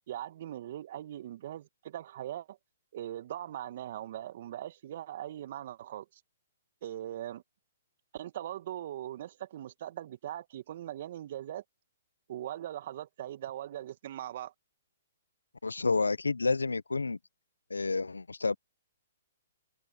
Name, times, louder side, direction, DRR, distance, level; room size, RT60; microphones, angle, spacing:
voice 1, 0.1-2.6 2.9-6.2 6.8-7.4 8.1-11.6 12.3-14.5, right 12 dB, 55° right, 1.9 m, -40 dB
voice 2, 15.6-17.2 17.7-18.6, left 3 dB, 90° left, 0.8 m, -29 dB
hypercardioid pair, 125°, 0 cm